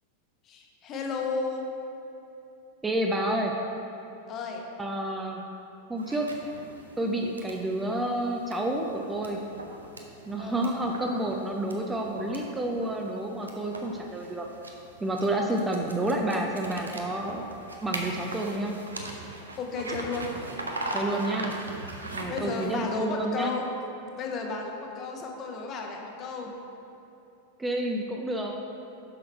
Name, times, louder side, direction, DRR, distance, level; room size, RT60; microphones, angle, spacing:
voice 1, 0.5-1.6 4.3-4.6 10.4-10.6 19.6-20.3 22.1-23.7 24.2-26.5, left 4 dB, 35° left, 1 dB, 1.0 m, -33 dB
voice 2, 2.8-3.5 4.8-5.4 5.9-6.3 7.0-9.4 10.3-14.5 15.0-17.5 17.8-18.8 20.9-21.5 22.1-23.6 27.6-28.5, right 1 dB, 10° right, 1 dB, 0.6 m, -29 dB
sound 1, 6.0-22.9, right 1 dB, 75° right, 0.7 m, -40 dB
7.3 x 6.2 x 4.5 m, 2.8 s
figure-of-eight pair, 90°, 0 cm